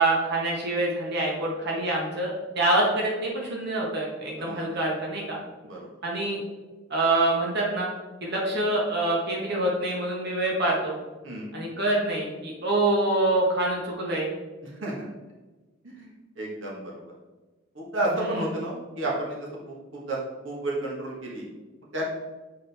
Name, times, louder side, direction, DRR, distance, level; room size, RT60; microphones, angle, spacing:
voice 1, 0.0-5.4 6.0-6.4 6.9-7.9 8.2-11.0 11.5-14.3, right 2 dB, 60° right, -2 dB, 1.4 m, -25 dB
voice 2, 14.6-15.1 15.8-16.9 17.7-20.2 20.4-21.4 21.9-22.0, right 1 dB, 80° right, -3 dB, 1.4 m, -31 dB
7.5 x 4.4 x 3.5 m, 1.2 s
head